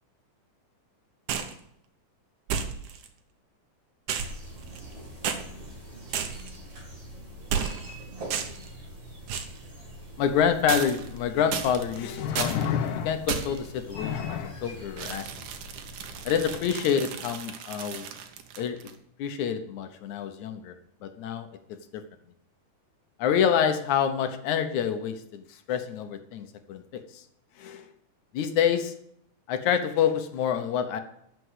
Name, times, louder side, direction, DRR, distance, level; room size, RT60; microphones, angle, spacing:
sound 1, 1.3-1.6 2.5-3.1 4.1-4.9 5.2-5.4 6.1-6.6 7.5-7.9 8.3-8.7 9.3-9.6 10.7-11.2 11.5-12.0 12.4-12.7 13.3-13.7 15.0-19.0, right 7 dB, 75° right, 2.6 m, -33 dB
sound 2, 4.2-16.7, right 1 dB, 45° right, 5.5 m, -44 dB
voice 1, 10.2-15.3 16.3-18.1 18.6-18.9 19.2-20.7 21.0-21.5 21.9-22.0 23.2-27.0 27.6-27.8 28.3-28.9 29.5-31.0, left 8 dB, 70° left, 8 dB, 2.2 m, -27 dB
sound 3, 12.2-13.4 13.9-14.6 16.5-16.7, left 8 dB, 85° left, 2.5 m, -30 dB
13.0 x 6.1 x 8.1 m, 0.72 s
omnidirectional pair, 3.7 m